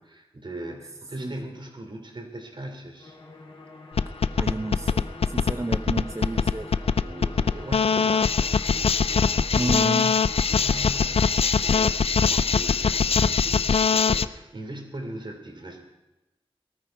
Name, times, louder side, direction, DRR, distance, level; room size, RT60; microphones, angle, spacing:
voice 1, 0.0-3.2 6.4-6.6 7.0-9.9 10.5-15.8, right 1 dB, 55° right, 4 dB, 3.0 m, -40 dB
sound 1, 3.0-11.8, left 2 dB, 65° left, 2.5 m, -44 dB
sound 2, 4.0-14.2, left 6 dB, 85° left, 0.4 m, -22 dB
voice 2, 4.4-6.7 9.6-10.3, right 2 dB, 30° right, 7 dB, 0.6 m, -31 dB
18.5 x 13.5 x 4.5 m, 1.0 s
wide cardioid pair, 75°, 10 cm